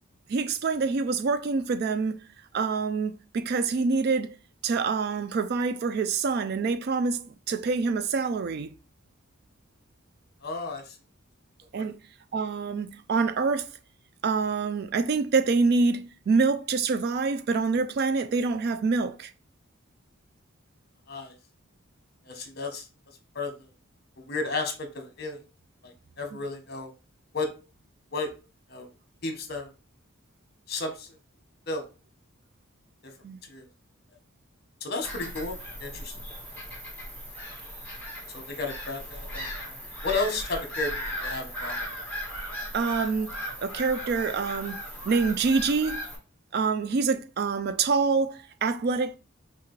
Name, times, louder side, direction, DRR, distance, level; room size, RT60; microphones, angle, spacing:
voice 1, 0.3-2.2 2.5-4.4 4.6-8.7 11.7-12.0 12.3-13.7 14.2-19.3 33.2-33.4 42.7-46.0 46.5-49.2, right 4 dB, 50° right, 0.3 m, -26 dB
voice 2, 10.4-11.0 11.8-11.9 21.1-21.3 22.2-22.8 23.3-23.7 24.2-25.4 25.8-26.9 27.3-27.5 28.1-28.3 28.7-28.9 29.2-29.7 30.7-31.1 31.7-31.9 33.5-33.7 34.8-36.1 38.3-39.8 40.0-41.8, left 3 dB, 50° left, 1.0 m, -33 dB
Bird vocalization bird call bird song / Gull seagull, 35.0-46.1, equal, 10° left, 1.5 m, -37 dB
5.7 x 2.4 x 3.2 m
head